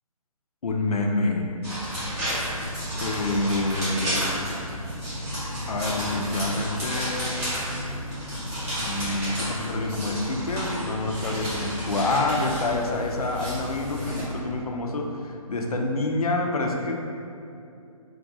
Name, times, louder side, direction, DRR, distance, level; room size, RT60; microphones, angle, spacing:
voice 1, 0.6-1.5 3.0-4.2 5.7-7.4 8.8-16.9, left 2 dB, 75° left, 2 dB, 0.4 m, -27 dB
sound 1, 1.6-14.2, equal, 10° right, 0.6 m, -31 dB
2.7 x 2.2 x 2.7 m, 2.6 s
figure-of-eight pair, 140°, 19 cm